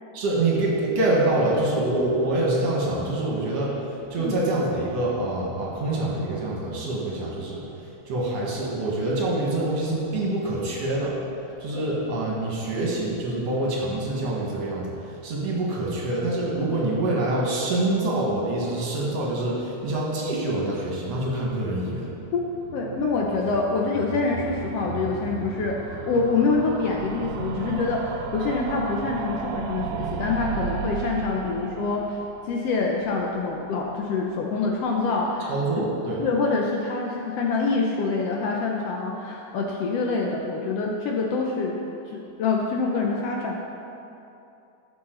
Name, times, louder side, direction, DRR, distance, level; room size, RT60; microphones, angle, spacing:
voice 1, 0.1-7.6 8.1-11.2 11.6-22.1 35.5-36.3, right 2 dB, 60° right, -4 dB, 2.6 m, -26 dB
sound 1, 21.6-34.0 34.3-34.4 34.6-34.7 34.9-35.0, right 8 dB, 85° right, 2.0 m, -35 dB
voice 2, 22.7-32.2 32.5-35.5 36.2-41.8 42.1-43.7, left 4 dB, 70° left, -1 dB, 1.6 m, -26 dB
13.5 x 7.1 x 3.8 m, 2.8 s
omnidirectional pair, 3.3 m